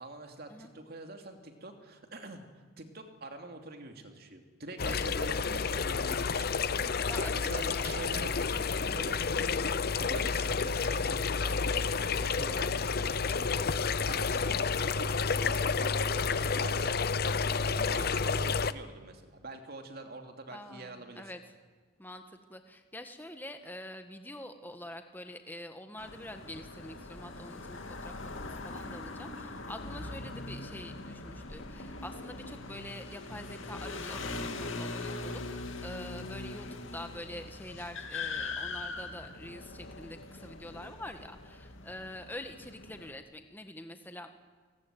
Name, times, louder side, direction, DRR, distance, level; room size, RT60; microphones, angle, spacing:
voice 1, 0.0-2.4 2.8-9.2 10.0-17.0 17.5-21.3, right 2 dB, 50° right, 5 dB, 2.8 m, -45 dB
sound 1, 4.8-18.7, left 5 dB, 50° left, 0.7 m, -30 dB
voice 2, 7.1-7.7 9.3-9.6 10.1-10.3 14.3-14.7 17.8-18.0 20.5-21.4 22.0-44.3, left 1 dB, 10° left, 7 dB, 1.5 m, -46 dB
sound 2, 26.0-43.1, left 3 dB, 75° left, 2.4 m, -41 dB
sound 3, 28.9-40.5, right 3 dB, 30° left, 5.3 m, -58 dB
29.0 x 19.0 x 9.3 m, 1.5 s
head